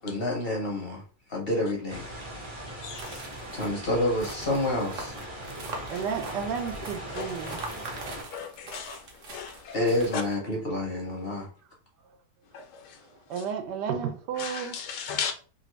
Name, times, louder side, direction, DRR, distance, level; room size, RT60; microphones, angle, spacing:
voice 1, 0.0-1.0 1.3-2.0 3.5-5.1 9.7-11.5, left 1 dB, 45° left, 0.8 m, -28 dB
sound 1, 1.9-8.2, right 1 dB, 25° right, 0.7 m, -40 dB
voice 2, 2.8-3.2 5.9-6.0 7.1-7.6 8.3-9.0 9.3-9.8 10.1-10.2 12.5-12.9 14.4-15.3, left 6 dB, 75° left, 1.2 m, -36 dB
sound 2, 3.0-10.3, right 3 dB, 55° right, 1.0 m, -42 dB
voice 3, 5.9-7.6 13.3-14.8, right 7 dB, 80° right, 1.2 m, -32 dB
3.1 x 2.5 x 3.1 m
omnidirectional pair, 1.9 m